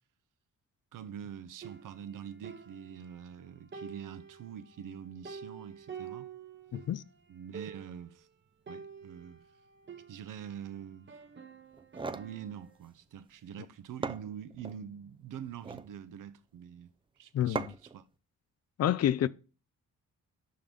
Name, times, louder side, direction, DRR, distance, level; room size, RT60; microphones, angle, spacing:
voice 1, 0.9-6.3 7.3-8.3 8.7-9.5 10.1-11.2 12.1-16.9 17.2-18.0, right 9 dB, 70° right, 0.7 m, -45 dB
sound 1, 1.6-3.4 3.7-7.0 7.3-7.4 7.5-8.1 8.7-10.7 11.1-12.7, right 6 dB, 35° right, 0.9 m, -48 dB
voice 2, 6.7-7.0 17.3-17.7 18.8-19.3, left 11 dB, 50° left, 0.4 m, -28 dB
sound 2, 11.7-12.3 13.6-13.7 14.0-14.8 15.5-15.9 17.5-18.0, right 4 dB, 15° right, 0.4 m, -38 dB
5.9 x 3.8 x 5.1 m
cardioid pair, 60°, 33 cm